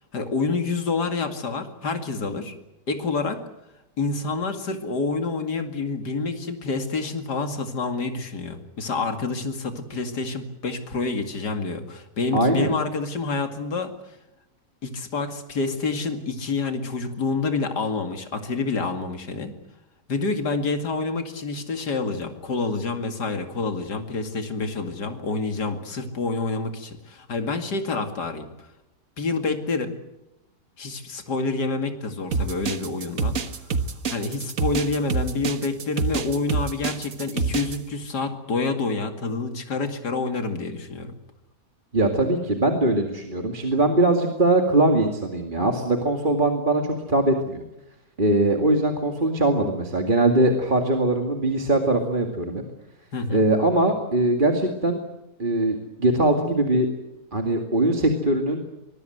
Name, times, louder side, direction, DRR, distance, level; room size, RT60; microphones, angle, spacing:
voice 1, 0.1-2.5 2.9-3.4 4.0-13.9 14.8-19.5 20.1-28.5 29.2-29.9 30.8-33.4 34.1-41.1 53.1-53.5, left 3 dB, 85° left, 7 dB, 2.9 m, -28 dB
voice 2, 12.3-12.7 41.9-47.6 48.2-52.6 53.3-55.0 55.4-56.9 57.3-58.6, right 2 dB, 30° right, 4 dB, 2.4 m, -21 dB
sound 1, 32.3-37.8, right 4 dB, 55° right, 1.8 m, -26 dB
25.0 x 21.5 x 8.0 m, 0.90 s
omnidirectional pair, 1.7 m